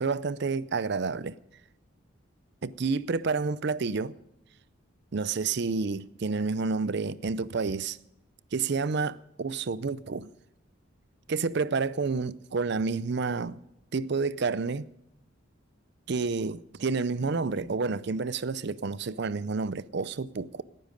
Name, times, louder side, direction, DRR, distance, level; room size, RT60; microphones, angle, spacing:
voice 1, 0.0-1.4 2.6-4.1 5.1-8.0 8.5-10.3 11.3-13.6 13.9-14.8 16.1-20.6, right 4 dB, 55° right, 0.5 m, -29 dB
19.0 x 10.0 x 5.2 m
head